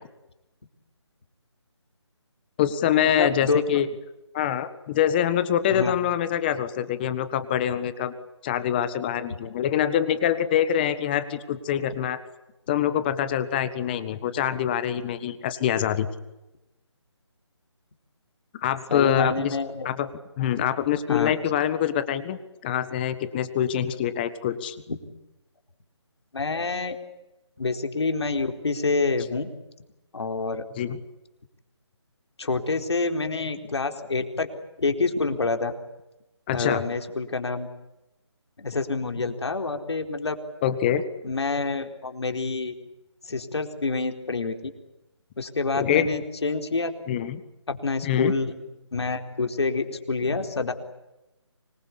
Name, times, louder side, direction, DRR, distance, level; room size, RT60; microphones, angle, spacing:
voice 1, 2.6-3.9 4.3-8.1 8.4-12.2 12.7-16.1 18.6-19.6 19.8-20.1 20.4-24.8 30.8-31.0 36.5-36.8 40.6-41.0 45.8-46.1 47.1-47.4 48.0-48.3, left 10 dB, 20° left, 12 dB, 1.6 m, -25 dB
voice 2, 3.1-3.6 5.7-5.9 18.9-19.9 21.1-21.3 24.9-25.0 26.3-27.0 27.6-29.5 30.1-30.6 32.4-34.5 34.8-35.7 36.5-37.7 38.6-40.3 41.2-42.7 43.2-44.6 45.4-46.9 47.7-48.5 48.9-50.7, left 3 dB, 65° left, 5 dB, 4.3 m, -27 dB
25.5 x 22.0 x 8.5 m, 0.95 s
figure-of-eight pair, 160°, 15 cm